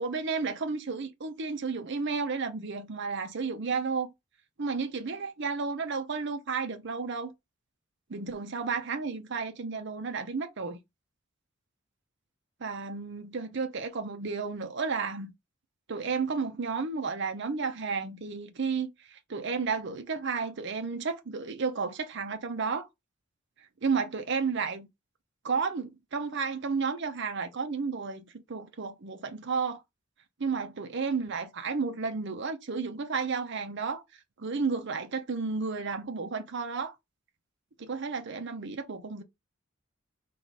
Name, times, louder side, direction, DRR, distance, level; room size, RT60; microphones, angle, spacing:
voice 1, 0.0-4.1 4.6-7.3 8.1-10.8 12.6-15.3 15.9-22.9 23.8-24.9 25.4-29.8 30.4-34.0 34.4-36.9 37.8-39.2, right 5 dB, 60° right, 0.7 m, -32 dB
4.1 x 2.5 x 4.6 m
head